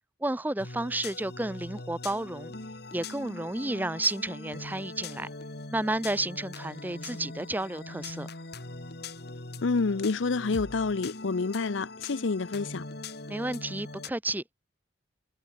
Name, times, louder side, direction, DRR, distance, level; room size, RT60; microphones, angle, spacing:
voice 1, 0.2-2.5 2.9-5.3 5.7-8.3 13.3-14.4, right 2 dB, 10° right, 0.6 m, -31 dB
sound 1, 0.6-14.1, left 3 dB, 55° left, 2.3 m, -41 dB
voice 2, 9.6-12.9, left 4 dB, 70° left, 0.6 m, -28 dB
head